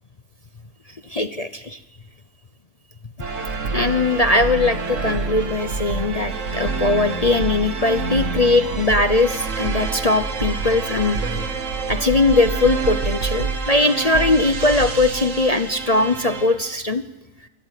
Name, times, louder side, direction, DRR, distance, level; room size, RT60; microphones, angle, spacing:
voice 1, 1.1-1.8 3.7-11.4 11.9-17.0, left 2 dB, 40° left, 9 dB, 0.5 m, -20 dB
sound 1, 3.2-16.7, right 4 dB, 50° right, 1.9 m, -27 dB
27.0 x 13.5 x 9.1 m, 1.1 s
omnidirectional pair, 1.8 m